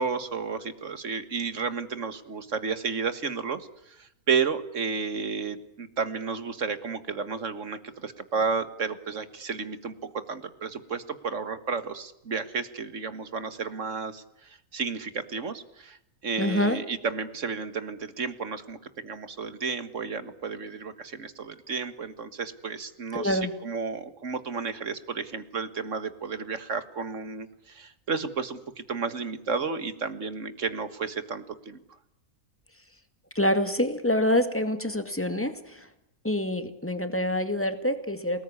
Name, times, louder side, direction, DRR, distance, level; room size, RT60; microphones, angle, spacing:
voice 1, 0.0-16.0 16.2-31.8, right 5 dB, 55° right, 12 dB, 1.9 m, -32 dB
voice 2, 16.4-16.8 23.1-23.5 33.4-35.8 36.2-38.4, left 1 dB, 10° left, 9 dB, 2.1 m, -26 dB
27.5 x 19.5 x 9.8 m, 0.83 s
omnidirectional pair, 1.5 m